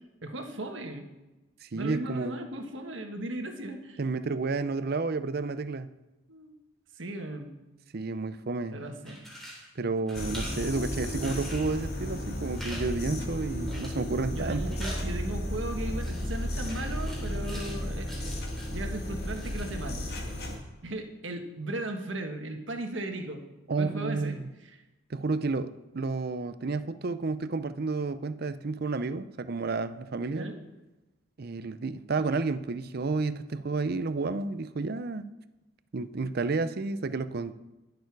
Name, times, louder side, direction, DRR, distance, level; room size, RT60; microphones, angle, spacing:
voice 1, 0.2-1.0 1.7-4.0 6.3-6.5 7.0-7.5 8.7-9.3 14.3-18.3 18.7-20.1 20.8-23.4 23.7-24.4 24.6-24.7 30.3-30.6, right 1 dB, 65° right, 4 dB, 1.5 m, -36 dB
voice 2, 1.6-2.4 4.0-5.9 7.9-8.8 9.8-14.8 23.7-24.5 25.1-30.5 31.4-35.2 35.9-37.5, right 3 dB, 50° right, 13 dB, 0.6 m, -31 dB
sound 1, 8.9-9.7 10.1-10.7 11.2-11.8 12.5-12.8 13.1-13.2 13.7-14.1 14.4-15.0 16.0-17.8 18.0-18.8 19.2-19.8, equal, ahead, 3.4 m, -44 dB
sound 2, 10.1-20.6, equal, 50° left, 2.1 m, -34 dB
20.5 x 6.9 x 4.7 m, 1.1 s
head